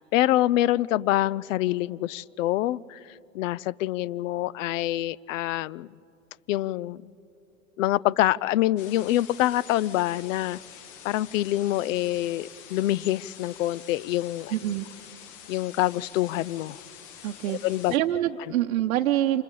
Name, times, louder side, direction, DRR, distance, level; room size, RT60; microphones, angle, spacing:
voice 1, 0.0-3.0 3.3-5.9 6.5-7.1 7.8-10.6 11.0-14.5 15.5-16.8 17.5-17.9, left 15 dB, 65° left, 24 dB, 0.5 m, -26 dB
sound 1, 8.8-18.0, left 8 dB, 45° left, 1.3 m, -47 dB
voice 2, 14.5-14.9 17.2-17.6 17.9-19.4, right 13 dB, 75° right, 4 dB, 0.8 m, -25 dB
29.0 x 27.5 x 3.9 m, 2.7 s
hypercardioid pair, 95°, 42 cm